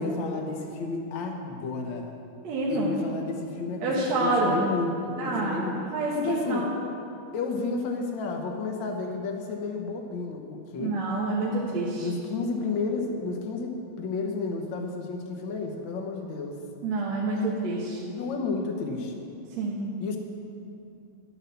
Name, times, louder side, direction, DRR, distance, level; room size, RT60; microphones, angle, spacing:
voice 1, 0.0-2.1 2.7-6.7 7.3-11.0 12.0-16.6 16.9-17.0 17.3-17.5 18.1-19.3 20.0-20.2, left 4 dB, 60° left, 3 dB, 1.3 m, -32 dB
voice 2, 2.4-2.9 3.8-4.6 5.2-5.6 5.9-6.8 10.8-12.1 16.8-18.0 19.6-19.8, right 2 dB, 65° right, -5 dB, 2.4 m, -27 dB
11.5 x 8.1 x 6.9 m, 2.6 s
omnidirectional pair, 3.4 m